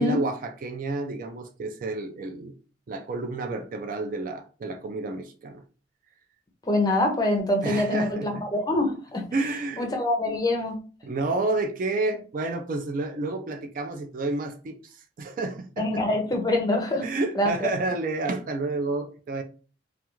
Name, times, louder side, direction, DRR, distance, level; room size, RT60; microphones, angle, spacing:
voice 1, 0.0-2.5 2.9-5.6 7.6-8.4 9.3-9.9 11.0-16.0 17.0-19.4, right 2 dB, 45° right, 0.4 m, -30 dB
voice 2, 6.7-9.3 9.8-10.8 15.8-17.0 17.4-17.7, left 1 dB, 20° left, 0.5 m, -25 dB
2.3 x 2.3 x 3.0 m
head